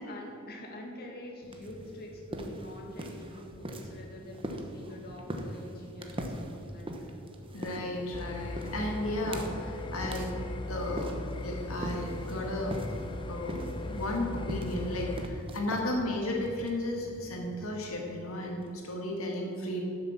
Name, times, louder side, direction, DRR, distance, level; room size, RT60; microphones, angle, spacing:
voice 1, 0.1-7.2, left 1 dB, 50° left, -1 dB, 2.0 m, -46 dB
sound 1, 1.4-18.9, right 1 dB, 25° right, 1.1 m, -42 dB
voice 2, 7.5-10.4 10.7-11.1 11.4-12.7 13.3-19.8, left 1 dB, 75° left, 0 dB, 2.0 m, -34 dB
sound 2, 8.1-15.3, left 2 dB, 25° left, 0.7 m, -38 dB
12.0 x 7.2 x 7.2 m, 2.9 s
head